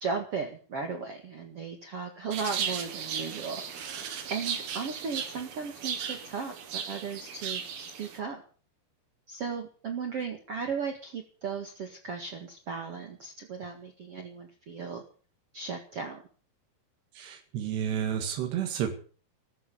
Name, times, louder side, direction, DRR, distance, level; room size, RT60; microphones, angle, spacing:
voice 1, 0.0-8.4 9.3-15.0 15.5-16.2, right 5 dB, 45° right, 4 dB, 2.2 m, -36 dB
sound 1, 2.3-8.2, right 7 dB, 70° right, 4.1 m, -36 dB
voice 2, 17.2-19.0, right 9 dB, 90° right, 4 dB, 4.2 m, -31 dB
15.0 x 14.0 x 6.9 m, 0.41 s
omnidirectional pair, 4.7 m